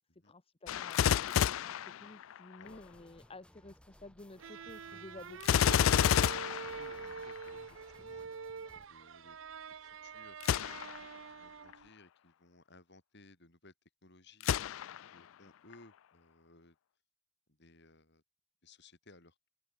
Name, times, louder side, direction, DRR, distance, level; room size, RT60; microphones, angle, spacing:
voice 1, 0.2-5.6, left 2 dB, 30° left, 1.1 m, -52 dB
Gunshot gunfire, 0.7-2.7 5.4-7.5 10.4-11.1 11.7-11.8 14.4-15.2 15.7-15.8, left 9 dB, 80° left, 0.4 m, -30 dB
sound 1, 2.6-8.9, equal, 5° left, 4.6 m, -61 dB
sound 2, 4.4-11.9, right 5 dB, 70° right, 0.6 m, -45 dB
voice 2, 6.1-8.4 8.9-9.4 9.7-10.8 11.3-13.7 14.0-14.5 14.9-16.8 17.5-18.2 18.6-19.4, left 2 dB, 60° left, 7.2 m, -60 dB
open air
head